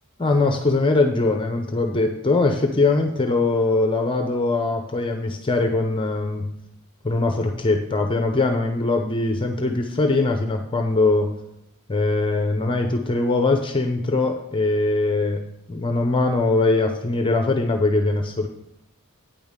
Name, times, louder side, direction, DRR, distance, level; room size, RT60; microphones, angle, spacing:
voice 1, 0.2-6.5 7.0-11.3 11.9-15.4 15.7-18.5, left 3 dB, 25° left, 5 dB, 0.6 m, -21 dB
8.9 x 5.4 x 6.4 m, 0.84 s
head